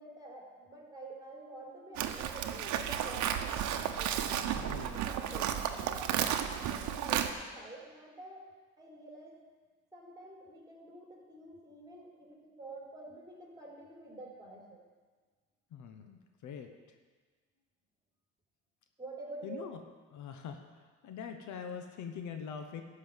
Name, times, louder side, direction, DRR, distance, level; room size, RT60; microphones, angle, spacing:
voice 1, 0.0-4.4 5.0-5.5 5.9-8.4 8.8-9.4 9.9-14.8 19.0-19.7, right 2 dB, 10° right, -2 dB, 3.8 m, -48 dB
Livestock farm animals working animals, 2.0-7.3, right 10 dB, 70° right, 0.9 m, -33 dB
voice 2, 4.5-5.0 15.7-16.7 19.4-19.8 20.1-20.6 21.0-22.8, left 7 dB, 70° left, 6 dB, 1.1 m, -43 dB
11.5 x 5.6 x 8.0 m, 1.4 s
cardioid pair, 85°, 30 cm